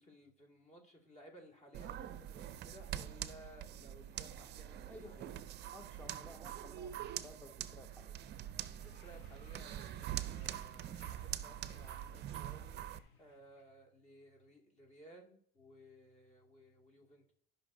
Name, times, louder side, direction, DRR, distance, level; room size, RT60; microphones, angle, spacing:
voice 1, 0.0-5.4 8.7-17.3, equal, 25° left, 2 dB, 2.2 m, -59 dB
sound 1, 1.7-13.0, right 12 dB, 35° right, 0.6 m, -44 dB
voice 2, 4.9-8.2, left 2 dB, 5° left, 5 dB, 0.7 m, -56 dB
sound 2, 8.6-13.6, left 3 dB, 55° left, 2.6 m, -62 dB
16.0 x 5.6 x 2.7 m, 0.63 s
hypercardioid pair, 90°, 30 cm